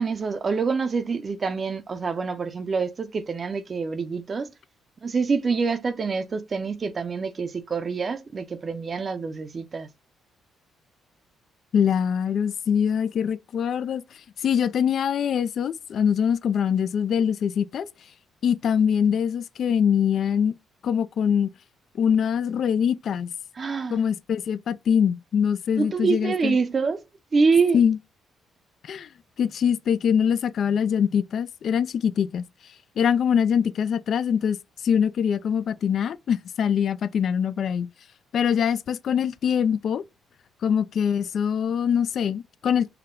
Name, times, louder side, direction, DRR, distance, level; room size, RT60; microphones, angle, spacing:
voice 1, 0.0-4.5 5.0-9.9 23.6-24.0 25.8-27.0 27.3-27.8, right 4 dB, 40° right, 0.6 m, -26 dB
voice 2, 11.7-17.9 18.4-20.5 20.8-21.5 22.0-23.3 23.9-26.6 27.7-28.0 28.8-29.1 29.4-32.4 33.0-34.6 34.8-37.9 38.3-40.0 40.6-42.9, left 8 dB, 60° left, 0.3 m, -23 dB
5.7 x 2.2 x 3.7 m
cardioid pair, 90°, 0 cm